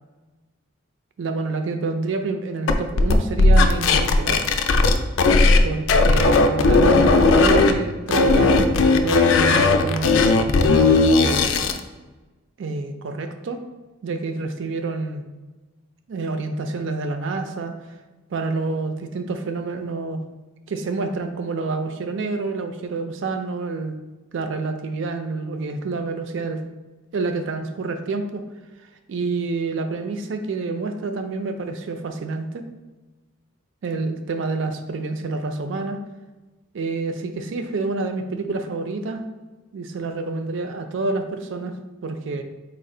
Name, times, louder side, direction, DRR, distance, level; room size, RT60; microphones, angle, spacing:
voice 1, 1.2-4.4 5.6-11.5 12.6-13.6 14.0-15.2 16.1-17.7 18.3-20.2 20.7-24.0 24.3-26.6 27.1-28.4 29.1-32.7 33.8-36.0 36.7-39.3 39.7-41.7 42.0-42.4, right 3 dB, 60° right, 7 dB, 0.4 m, -28 dB
sound 1, 2.7-5.6 5.9-7.7 8.1-11.8, left 3 dB, 65° left, 0.3 m, -16 dB
4.3 x 2.3 x 3.7 m, 1.2 s
head